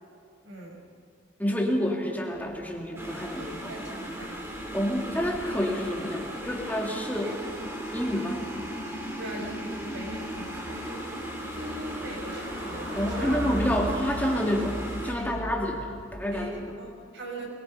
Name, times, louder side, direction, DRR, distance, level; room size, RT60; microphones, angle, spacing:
voice 1, 0.4-0.8 3.4-4.4 7.0-7.3 9.2-11.2 11.5-13.3 15.1-15.6 16.3-17.5, right 1 dB, 65° right, -1 dB, 6.0 m, -41 dB
voice 2, 1.4-3.7 4.7-7.4 7.9-8.4 13.0-16.5, equal, 10° left, 0 dB, 2.5 m, -28 dB
sound 1, 2.3-16.6, right 1 dB, 85° right, 4.6 m, -41 dB
sound 2, 3.0-15.2, equal, 15° right, 3.0 m, -37 dB
22.0 x 21.5 x 5.6 m, 2.3 s
head